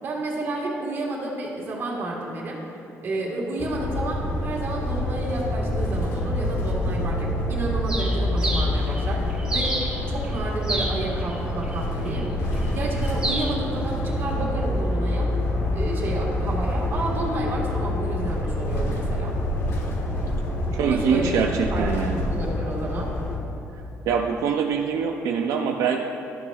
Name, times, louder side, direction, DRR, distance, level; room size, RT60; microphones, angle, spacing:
voice 1, 0.0-2.6 3.0-9.2 9.5-12.3 12.7-15.3 15.7-19.3 20.7-23.1, right 2 dB, 45° right, -2 dB, 1.4 m, -31 dB
sound 1, 3.6-23.4, left 1 dB, 50° left, 1.1 m, -27 dB
Bird, 7.9-14.6, right 1 dB, 15° right, 1.1 m, -33 dB
voice 2, 20.7-22.2 24.1-26.0, right 6 dB, 80° right, 2 dB, 0.4 m, -24 dB
12.5 x 6.9 x 2.3 m, 2.8 s
cardioid pair, 165°, 5 cm